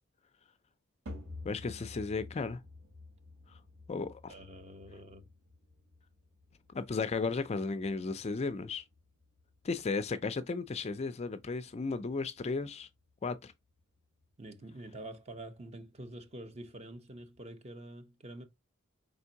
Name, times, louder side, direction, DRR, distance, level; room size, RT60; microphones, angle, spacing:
sound 1, 1.1-17.5, left 2 dB, 65° right, 2.7 m, -53 dB
voice 1, 1.4-2.6 3.9-4.3 6.7-8.8 9.6-12.9 13.2-13.5, left 4 dB, 30° left, 0.3 m, -34 dB
voice 2, 4.3-5.2 14.4-18.4, right 1 dB, 30° right, 0.8 m, -47 dB
5.1 x 3.5 x 2.8 m
head